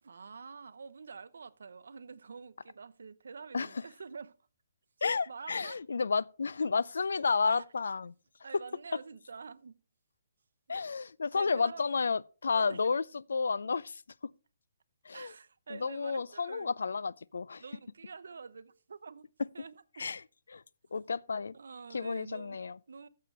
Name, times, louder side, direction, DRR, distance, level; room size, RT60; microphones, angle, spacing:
voice 1, 0.0-4.3 5.3-5.8 7.5-7.7 8.4-9.8 11.3-11.9 12.5-12.9 15.1-16.7 17.6-19.3 19.5-20.1 21.5-22.6 22.9-23.1, right 5 dB, 75° right, 0.8 m, -47 dB
voice 2, 5.0-8.1 8.5-8.6 10.7-13.0 13.3-14.0 15.1-15.3 15.7-17.6 20.0-20.2 20.5-20.6 20.9-21.5 21.9-22.8, left 4 dB, 85° left, 0.4 m, -31 dB
14.5 x 6.7 x 3.3 m
hypercardioid pair, 175°, 0 cm